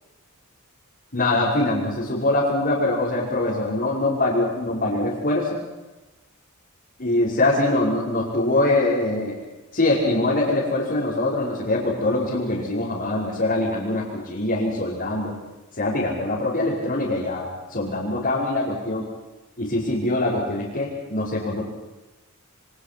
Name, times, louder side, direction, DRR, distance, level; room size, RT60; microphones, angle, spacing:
voice 1, 1.1-5.6 7.0-9.4 9.7-15.3 15.8-19.1 19.6-21.6, left 2 dB, 45° left, -7 dB, 5.6 m, -23 dB
28.5 x 25.0 x 6.2 m, 1.1 s
head